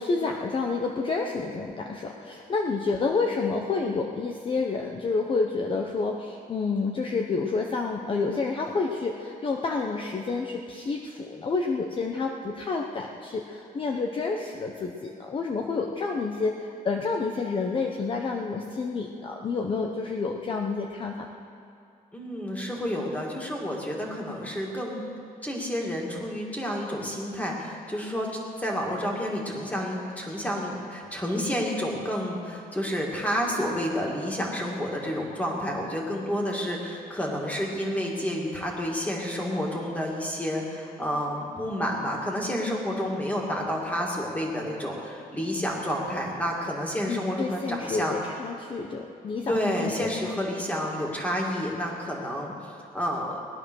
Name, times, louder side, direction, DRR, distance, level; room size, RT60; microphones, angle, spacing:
voice 1, 0.0-21.3 47.1-50.4, left 4 dB, 35° left, 2 dB, 0.9 m, -29 dB
voice 2, 22.1-25.1 25.4-28.3 28.6-48.2 49.5-53.4, equal, 10° left, -2 dB, 2.4 m, -30 dB
19.5 x 11.5 x 6.4 m, 2.5 s
cardioid pair, 160°, 16 cm